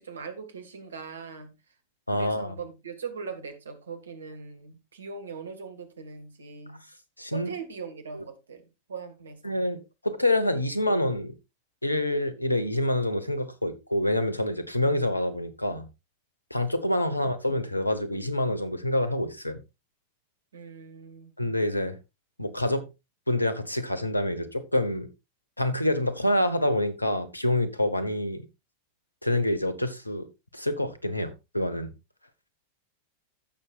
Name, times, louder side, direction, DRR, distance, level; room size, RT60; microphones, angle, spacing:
voice 1, 0.0-1.5 2.1-6.8 7.3-8.6 8.9-9.6 17.1-17.2 20.5-21.3, right 5 dB, 70° right, 1.7 m, -40 dB
voice 2, 2.1-2.5 7.2-7.5 8.1-8.2 9.4-11.3 11.8-15.9 16.5-19.6 21.4-22.0 22.4-22.9 23.3-25.1 25.6-28.4 29.2-30.3 30.5-31.9, left 1 dB, 85° left, 1.0 m, -27 dB
15.5 x 6.4 x 2.4 m
figure-of-eight pair, 90°, 0 cm